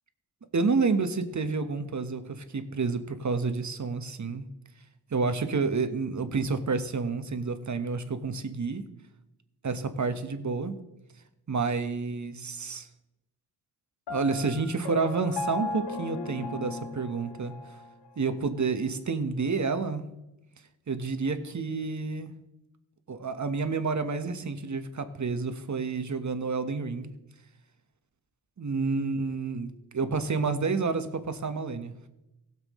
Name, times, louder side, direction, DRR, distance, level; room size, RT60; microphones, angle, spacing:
voice 1, 0.5-4.5 5.1-8.8 9.6-10.8 11.5-12.9 14.1-17.5 18.2-20.1 20.9-22.3 23.1-27.1 28.6-31.9, right 4 dB, 45° right, 9 dB, 1.3 m, -29 dB
Piano, 14.1-17.9, left 3 dB, 75° left, 1.2 m, -36 dB
17.0 x 7.5 x 3.2 m, 0.92 s
cardioid pair, 50°, 41 cm